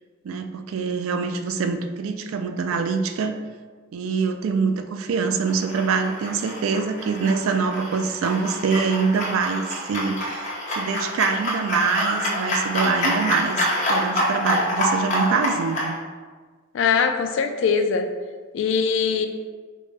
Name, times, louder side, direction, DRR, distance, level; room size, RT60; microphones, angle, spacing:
voice 1, 0.2-3.4 3.9-10.5 10.7-16.0, right 5 dB, 85° right, 7 dB, 0.3 m, -24 dB
sound 1, 5.4-15.9, equal, 35° left, 0.8 m, -27 dB
voice 2, 16.7-18.1 18.5-19.3, left 6 dB, 65° left, 6 dB, 0.3 m, -22 dB
5.0 x 2.1 x 3.3 m, 1.5 s
head